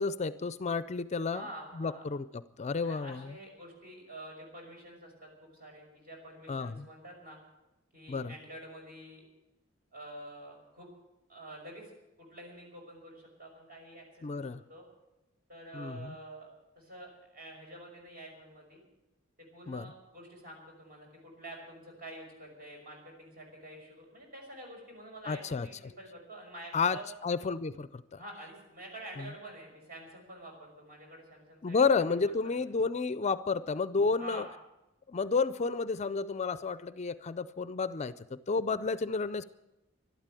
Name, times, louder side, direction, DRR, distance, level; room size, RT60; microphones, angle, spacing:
voice 1, 0.0-1.5 1.7-3.3 6.5-6.9 8.1-8.4 14.2-14.6 15.7-16.2 19.7-19.9 25.3-25.9 26.7-28.2 29.2-29.3 31.6-34.5 35.1-39.4, left 4 dB, 35° left, 15 dB, 0.4 m, -31 dB
voice 2, 1.3-2.0 2.8-7.4 7.9-9.2 9.9-10.9 11.3-11.9 12.2-14.8 15.5-16.5 16.8-18.8 19.4-27.0 28.2-31.8 32.2-32.6 34.2-34.5, right 1 dB, 45° right, 1 dB, 5.9 m, -48 dB
12.5 x 12.0 x 9.0 m, 0.97 s
head